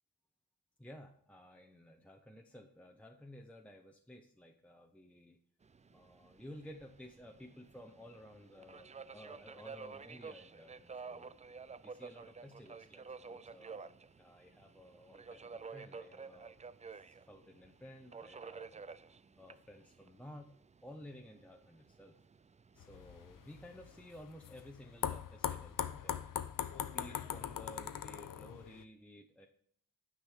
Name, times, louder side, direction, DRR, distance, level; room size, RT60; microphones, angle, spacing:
voice 1, 0.8-5.4 5.9-11.3 11.8-16.6 17.1-18.8 19.4-20.6 20.8-22.2 22.7-25.8 26.0-26.2 26.7-29.5, equal, 5° left, 3 dB, 0.9 m, -54 dB
Subway metro underground, 5.6-24.1, right 5 dB, 20° right, 0.3 m, -52 dB
sound 1, 22.8-28.8, left 9 dB, 65° left, 0.7 m, -41 dB
9.3 x 5.4 x 5.0 m, 0.66 s
cardioid pair, 70°, 36 cm